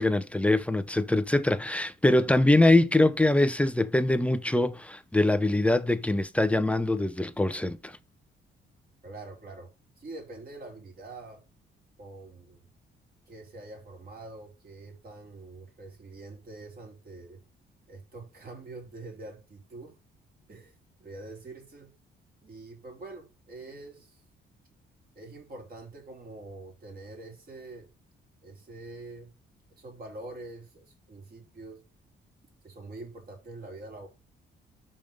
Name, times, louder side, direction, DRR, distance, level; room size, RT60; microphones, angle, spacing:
voice 1, 0.0-7.9, left 1 dB, 5° left, 0.6 m, -23 dB
voice 2, 9.0-9.7 10.0-11.4 12.0-12.6 13.3-17.4 17.9-20.0 20.5-21.9 22.4-24.2 25.1-27.9 28.4-29.3 29.8-31.8 32.6-34.1, right 2 dB, 45° right, 3.4 m, -45 dB
5.3 x 5.2 x 5.1 m
cardioid pair, 90°, 20 cm